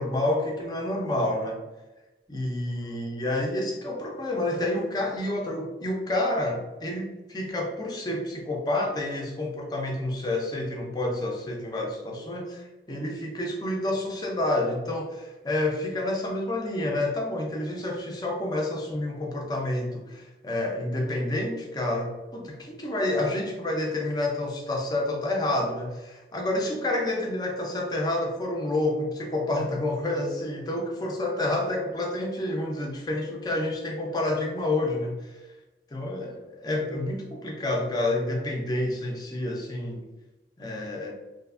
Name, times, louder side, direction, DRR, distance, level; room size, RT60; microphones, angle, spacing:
voice 1, 0.0-1.6 2.3-35.3 35.9-40.0 40.6-41.1, left 1 dB, 20° left, 0 dB, 0.4 m, -29 dB
2.7 x 2.4 x 2.3 m, 1.1 s
head